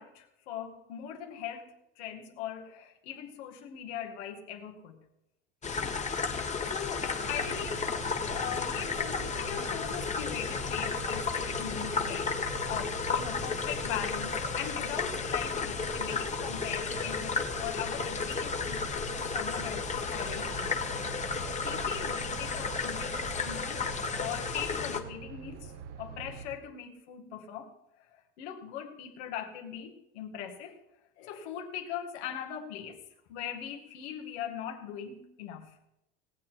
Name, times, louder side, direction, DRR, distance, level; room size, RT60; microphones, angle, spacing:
voice 1, 0.0-1.7 2.0-5.0 6.7-18.9 19.2-20.8 21.6-23.9 24.2-25.7 26.0-27.7 28.0-30.8 31.2-33.0 33.3-35.8, left 9 dB, 75° left, 3 dB, 2.1 m, -40 dB
sound 1, 5.6-25.0, left 5 dB, 20° left, 1.3 m, -33 dB
sound 2, 7.2-26.6, right 6 dB, 75° right, 1.2 m, -45 dB
18.0 x 8.0 x 4.6 m, 0.89 s
supercardioid pair, 100°, 33 cm